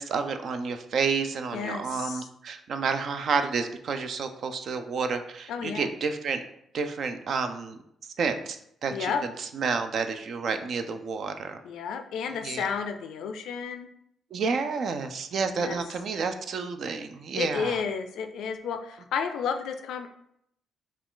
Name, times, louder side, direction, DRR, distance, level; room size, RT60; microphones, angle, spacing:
voice 1, 0.0-6.4 6.7-9.1 9.5-11.6 12.4-12.6 14.3-17.8, right 5 dB, 65° right, 8 dB, 0.4 m, -30 dB
voice 2, 1.5-2.3 5.5-5.9 8.9-9.2 11.6-13.9 15.5-15.8 17.4-20.1, left 6 dB, 85° left, 7 dB, 0.4 m, -32 dB
4.6 x 2.4 x 3.7 m, 0.74 s
cardioid pair, 75°, 0 cm